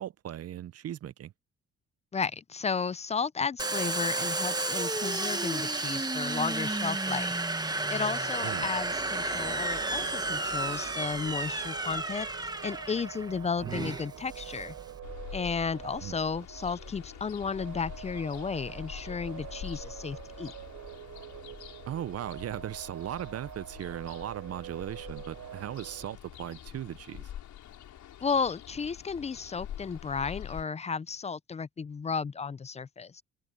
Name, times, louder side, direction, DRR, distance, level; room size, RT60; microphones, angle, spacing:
voice 1, 0.0-1.3 8.4-8.7 13.6-14.0 16.0-16.2 21.9-27.3, right 11 dB, 55° right, 0.6 m, -38 dB
voice 2, 2.1-7.3 7.9-14.7 15.3-20.5 28.2-33.2, left 5 dB, 20° left, 0.4 m, -33 dB
Domestic sounds home sounds, 3.6-15.0, right 2 dB, 15° right, 1.3 m, -32 dB
sound 1, 7.8-26.1, right 11 dB, 70° right, 4.6 m, -46 dB
Ocean, 15.0-30.6, left 11 dB, 75° left, 5.7 m, -46 dB
open air
cardioid pair, 90°, 30 cm